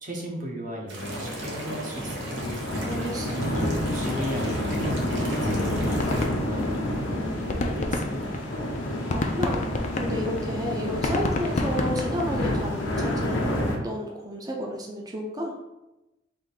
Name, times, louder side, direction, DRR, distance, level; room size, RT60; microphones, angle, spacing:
voice 1, 0.0-2.5 3.4-8.5, equal, 45° right, -1 dB, 0.8 m, -36 dB
sound 1, 0.9-6.3, right 2 dB, 80° right, 0.9 m, -39 dB
sound 2, 1.0-13.8, left 1 dB, 90° left, 0.8 m, -29 dB
voice 2, 2.8-3.4 9.1-15.6, equal, 20° right, -1 dB, 0.5 m, -32 dB
sound 3, 5.0-5.1 5.3-5.4 5.7-7.1 7.3-12.6, left 2 dB, 40° left, 0.4 m, -30 dB
3.6 x 2.6 x 4.0 m, 0.97 s
head